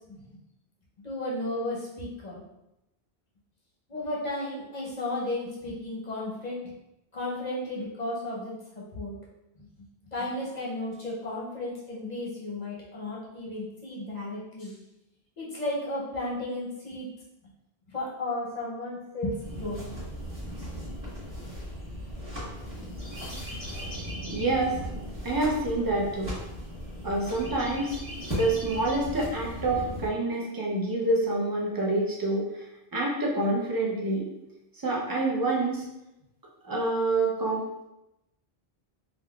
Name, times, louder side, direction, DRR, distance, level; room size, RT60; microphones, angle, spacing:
voice 1, 0.1-0.4 1.0-2.4 3.9-6.7 7.1-9.1 9.6-9.7 10.1-14.7 15.4-17.1 17.9-19.9, left 1 dB, 45° left, -5 dB, 0.7 m, -34 dB
sound 1, 19.4-30.1, equal, 10° right, 1.3 m, -37 dB
voice 2, 24.3-24.8 25.2-26.4 27.0-28.0 28.4-32.7 32.9-34.3 34.8-35.8 36.6-37.8, right 2 dB, 30° right, -3 dB, 0.4 m, -27 dB
3.6 x 2.3 x 2.2 m, 0.91 s
omnidirectional pair, 1.0 m